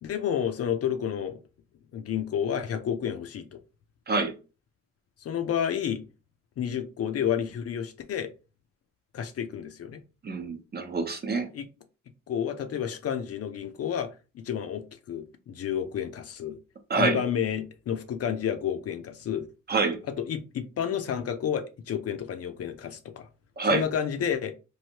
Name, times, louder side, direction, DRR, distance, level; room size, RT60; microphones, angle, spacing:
voice 1, 0.0-1.4 1.9-3.5 5.2-6.0 6.6-8.3 9.1-10.0 11.5-11.7 12.3-14.1 14.3-16.6 17.0-19.4 20.2-23.3 23.7-24.5, left 8 dB, 50° left, 0.6 m, -30 dB
voice 2, 10.2-11.5 16.9-17.2 19.7-20.0 23.6-23.8, right 3 dB, 30° right, 0.8 m, -26 dB
3.2 x 2.6 x 2.8 m
cardioid pair, 90°, 30 cm